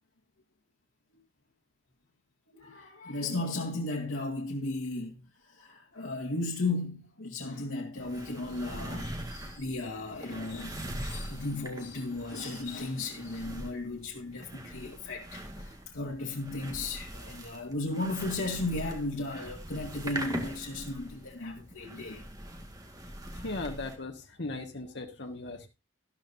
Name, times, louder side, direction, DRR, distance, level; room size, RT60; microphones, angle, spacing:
voice 1, 2.5-22.2, left 2 dB, 85° left, 1.8 m, -35 dB
sound 1, 8.0-24.0, right 1 dB, 20° right, 1.6 m, -42 dB
voice 2, 23.3-25.7, left 2 dB, 55° left, 1.6 m, -38 dB
13.0 x 12.0 x 2.7 m
head